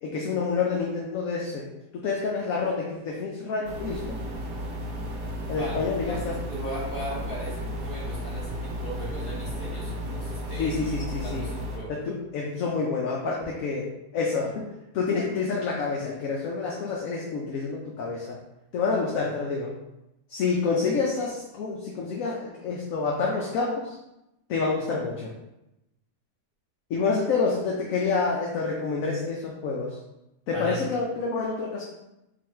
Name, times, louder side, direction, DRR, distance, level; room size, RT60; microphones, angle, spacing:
voice 1, 0.0-1.7 1.9-4.1 5.5-6.3 10.6-11.4 11.9-13.9 14.1-14.6 14.9-18.4 18.7-19.7 20.3-23.9 24.5-25.3 26.9-30.0 30.5-31.8, left 4 dB, 65° left, -2 dB, 0.9 m, -28 dB
sound 1, 3.6-11.8, equal, 80° right, 1.3 m, -34 dB
voice 2, 5.4-5.8 6.1-10.9 11.2-11.9 30.5-30.8, right 1 dB, 35° left, -5 dB, 1.4 m, -37 dB
3.8 x 2.5 x 4.3 m, 0.91 s
omnidirectional pair, 1.7 m